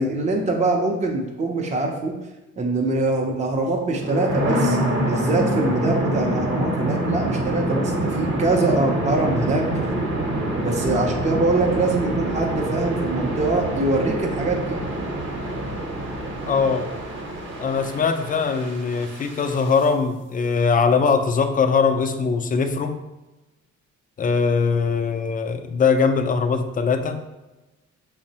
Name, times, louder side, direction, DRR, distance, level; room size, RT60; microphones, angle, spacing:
voice 1, 0.0-2.1 2.6-4.8 5.1-9.6 10.6-14.8, right 2 dB, 25° right, 0 dB, 0.6 m, -23 dB
sound 1, 3.9-19.8, right 1 dB, 40° right, 1.0 m, -26 dB
voice 2, 16.5-16.9 17.6-22.9 24.2-27.2, left 5 dB, 30° left, 7 dB, 0.4 m, -21 dB
5.7 x 2.0 x 2.8 m, 1.1 s
cardioid pair, 90°, 30 cm